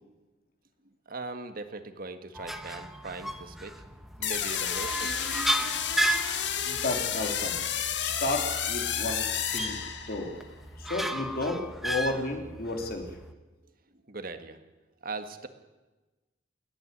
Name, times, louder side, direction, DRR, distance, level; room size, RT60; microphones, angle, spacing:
voice 1, 1.1-3.8 4.2-5.3 14.1-14.6 15.0-15.5, right 3 dB, 55° right, 9 dB, 1.7 m, -39 dB
sound 1, 2.4-13.3, right 1 dB, ahead, 1.1 m, -35 dB
sound 2, 4.2-10.4, left 9 dB, 80° left, 1.8 m, -31 dB
voice 2, 6.6-7.6 8.0-9.8 10.1-10.4 10.8-13.2, left 2 dB, 55° left, 4 dB, 2.9 m, -32 dB
29.0 x 10.5 x 9.7 m, 1.2 s
head